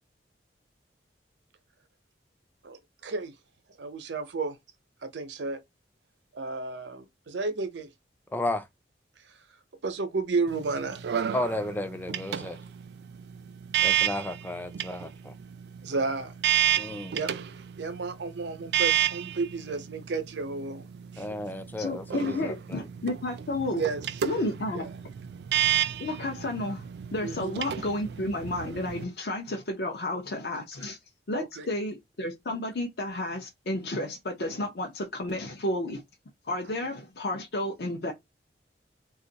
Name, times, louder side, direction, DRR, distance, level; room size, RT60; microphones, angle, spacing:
voice 1, 2.6-3.3 3.8-4.6 5.0-5.6 6.3-7.9 9.8-11.1 15.8-16.3 17.1-17.3 17.8-21.3 23.8-24.0 24.7-24.9 27.2-27.6 31.3-31.7, right 4 dB, 80° right, 0.7 m, -32 dB
voice 2, 8.3-8.7 11.3-12.6 13.8-15.3 16.8-17.2 21.2-22.9, left 1 dB, 10° left, 0.4 m, -33 dB
sound 1, 10.5-29.0, right 10 dB, 65° right, 0.3 m, -31 dB
voice 3, 21.8-23.8 24.2-24.9 26.0-31.0 31.3-36.0 36.5-38.1, left 1 dB, 60° left, 0.6 m, -32 dB
2.5 x 2.4 x 3.9 m
head